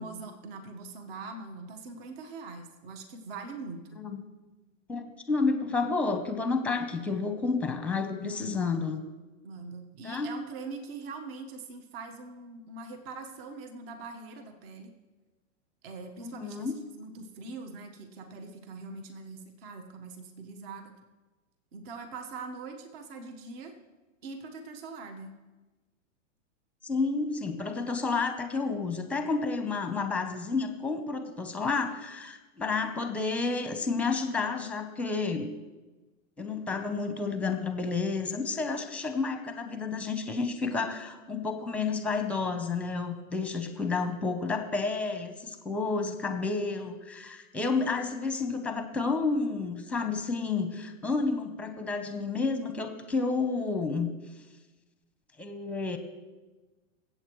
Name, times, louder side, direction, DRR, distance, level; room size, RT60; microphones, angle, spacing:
voice 1, 0.0-4.0 8.2-8.6 9.4-14.9 15.8-20.9 21.7-23.7 24.2-25.3, right 4 dB, 50° right, 5 dB, 1.4 m, -42 dB
voice 2, 4.9-9.0 10.0-10.3 16.2-16.7 26.8-35.5 36.4-54.1 55.4-56.0, left 4 dB, 5° left, 7 dB, 0.8 m, -30 dB
22.5 x 8.1 x 3.2 m, 1.2 s
hypercardioid pair, 140°, 38 cm